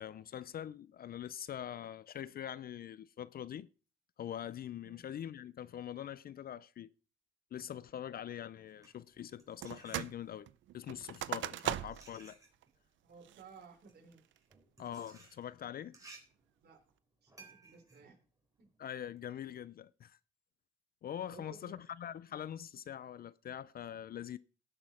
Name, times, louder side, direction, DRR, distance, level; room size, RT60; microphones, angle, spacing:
voice 1, 0.0-3.7 4.2-6.9 7.5-10.5 10.7-12.4 14.8-16.0 18.8-20.2 21.0-24.4, left 10 dB, 50° left, 0.4 m, -43 dB
sound 1, 8.6-10.5 11.3-19.2, right 3 dB, 15° right, 3.8 m, -60 dB
sound 2, 9.6-10.2 10.5-12.2 12.6-12.7 13.2-13.6 14.1-14.5, right 13 dB, 70° right, 0.5 m, -39 dB
voice 2, 13.0-14.2 16.6-16.8 17.2-18.2 18.6-18.7 21.3-21.8, right 5 dB, 55° right, 3.6 m, -56 dB
17.0 x 6.2 x 4.2 m
cardioid pair, 90°, 20 cm